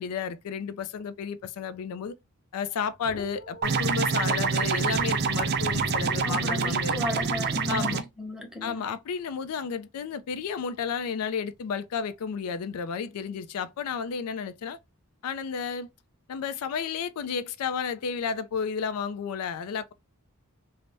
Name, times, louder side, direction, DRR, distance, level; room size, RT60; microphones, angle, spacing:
voice 1, 0.0-2.1 2.5-7.0 7.7-8.0 8.6-14.8 15.2-15.9 16.3-19.9, left 6 dB, 80° left, 0.4 m, -32 dB
sound 1, 3.0-7.8, left 1 dB, 50° left, 1.0 m, -40 dB
sound 2, 3.6-8.0, right 5 dB, 45° right, 0.4 m, -26 dB
voice 2, 6.2-8.8, left 2 dB, ahead, 0.6 m, -35 dB
3.3 x 2.0 x 2.5 m
head